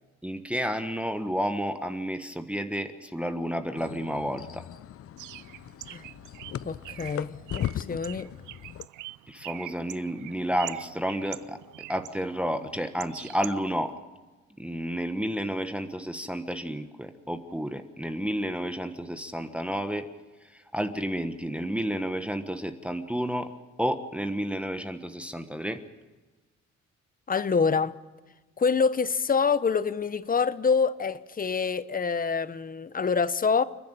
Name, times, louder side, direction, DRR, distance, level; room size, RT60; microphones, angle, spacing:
voice 1, 0.2-4.6 9.3-11.6 11.9-13.9 14.6-20.1 20.4-23.5 23.8-25.8, equal, 5° right, 1.3 m, -31 dB
sound 1, 3.8-8.9, left 11 dB, 50° left, 0.6 m, -38 dB
Bird, 5.2-13.9, right 16 dB, 90° right, 0.6 m, -44 dB
voice 2, 6.6-8.3 27.3-28.0 28.6-33.6, left 5 dB, 30° left, 0.9 m, -26 dB
29.5 x 10.5 x 8.9 m
cardioid pair, 90°, 30 cm